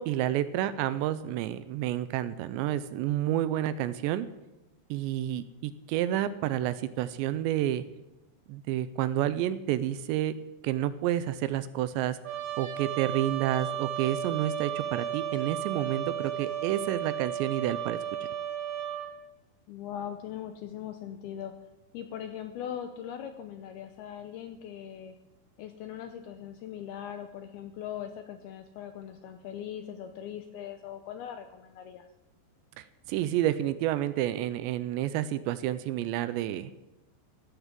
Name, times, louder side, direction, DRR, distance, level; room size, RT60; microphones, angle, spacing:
voice 1, 0.0-4.3 4.9-7.8 8.5-10.3 10.6-12.2 12.6-18.0 32.8-36.7, right 12 dB, 80° right, 14 dB, 2.7 m, -29 dB
Trumpet, 12.2-19.1, right 10 dB, 45° right, 3.1 m, -34 dB
voice 2, 19.7-21.5 21.9-25.1 25.6-32.1, left 9 dB, 80° left, 7 dB, 2.3 m, -40 dB
16.0 x 11.5 x 7.4 m, 0.99 s
omnidirectional pair, 5.4 m